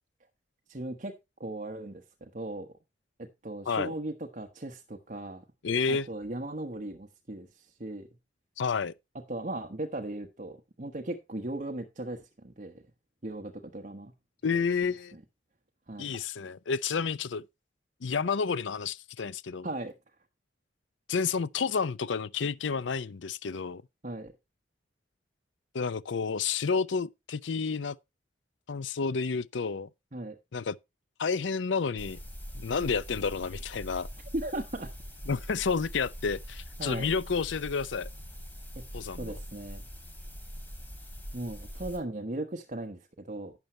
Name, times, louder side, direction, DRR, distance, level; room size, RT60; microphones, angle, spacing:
voice 1, 0.7-1.1 1.4-2.7 3.2-5.4 5.9-8.1 9.3-12.8 13.2-14.1 15.1-15.2 15.9-16.2 19.6-19.9 24.0-24.3 30.1-30.4 34.3-34.9 36.8-37.1 38.7-38.8 39.2-39.8 41.3-43.5, right 1 dB, 45° right, 1.2 m, -37 dB
voice 2, 5.6-6.1 8.6-8.9 14.4-15.1 16.0-17.4 18.0-19.7 21.1-23.8 25.7-28.0 28.7-29.9 30.5-30.8 31.2-32.2 32.5-34.1 35.3-38.1 38.9-39.4, left 5 dB, 75° left, 0.6 m, -30 dB
sound 1, 32.0-42.0, equal, 10° left, 3.3 m, -43 dB
12.0 x 9.0 x 3.1 m
head